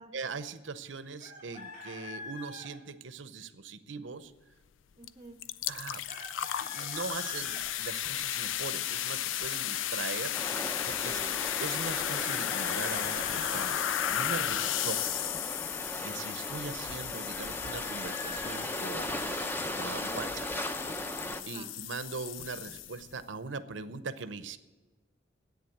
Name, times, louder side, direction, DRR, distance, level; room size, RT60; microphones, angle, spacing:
voice 1, 0.1-4.3 5.7-6.0 6.6-11.2 11.6-15.1 16.0-19.1 19.8-20.5 21.1-24.6, right 4 dB, 75° right, 13 dB, 0.8 m, -41 dB
Chicken rooster, 1.2-2.7 6.1-7.6 12.2-13.7 17.3-18.8, left 2 dB, 50° left, 2.8 m, -44 dB
sound 1, 5.0-5.1 5.4-23.1, left 11 dB, 90° left, 0.4 m, -34 dB
voice 2, 5.0-5.4 11.0-11.4 15.1-15.6 19.9-20.3 21.3-21.7, right 1 dB, 25° right, 6 dB, 0.8 m, -50 dB
sound 2, 10.3-21.4, left 1 dB, 10° left, 0.6 m, -38 dB
10.5 x 8.9 x 8.4 m, 1.2 s
head